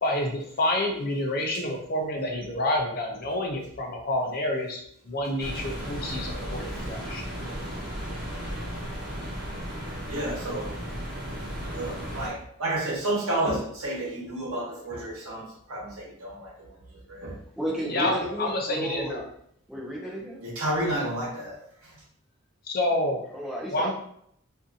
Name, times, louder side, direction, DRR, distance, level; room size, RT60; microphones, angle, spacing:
voice 1, 0.0-7.3 17.9-19.2 20.0-20.1 22.6-23.2 23.7-23.9, left 1 dB, 45° left, 1 dB, 0.5 m, -28 dB
sound 1, 5.4-12.3, equal, 45° right, 0.9 m, -35 dB
voice 2, 10.1-10.8 11.7-17.4 18.0-18.1 20.4-22.0, right 1 dB, 80° right, -4 dB, 0.9 m, -31 dB
voice 3, 17.6-19.2 19.7-20.4 23.3-23.9, right 1 dB, ahead, -5 dB, 0.6 m, -33 dB
2.6 x 2.5 x 2.4 m, 0.68 s
head